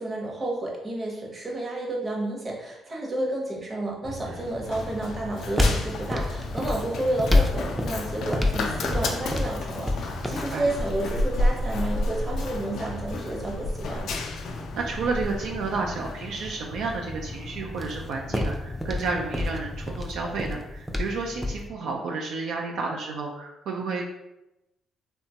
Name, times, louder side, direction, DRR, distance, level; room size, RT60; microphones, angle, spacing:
voice 1, 0.0-14.2, right 1 dB, 30° right, -2 dB, 0.8 m, -31 dB
Run, 4.0-20.1, left 2 dB, 70° left, 0.3 m, -32 dB
sound 1, 4.6-21.7, left 2 dB, ahead, 0.4 m, -31 dB
voice 2, 10.3-10.7 14.8-24.1, right 4 dB, 80° right, 0 dB, 0.3 m, -31 dB
2.8 x 2.2 x 2.8 m, 0.92 s
cardioid pair, 90°, 0 cm